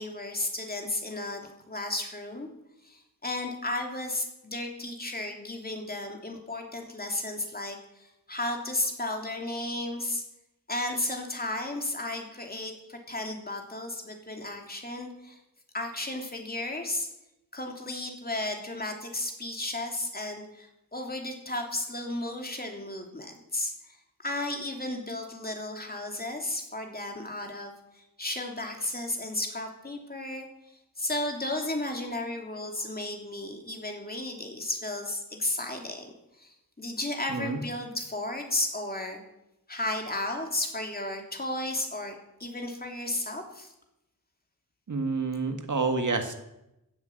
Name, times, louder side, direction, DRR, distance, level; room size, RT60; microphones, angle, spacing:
voice 1, 0.0-2.5 2.8-10.2 10.7-15.4 15.7-17.1 17.5-23.7 24.2-30.5 31.0-39.2 39.7-43.7, left 2 dB, 25° left, 3 dB, 2.9 m, -34 dB
voice 2, 37.3-37.6 44.9-46.3, right 4 dB, 55° right, 6 dB, 1.8 m, -28 dB
16.0 x 10.5 x 7.8 m, 0.88 s
wide cardioid pair, 120°, 36 cm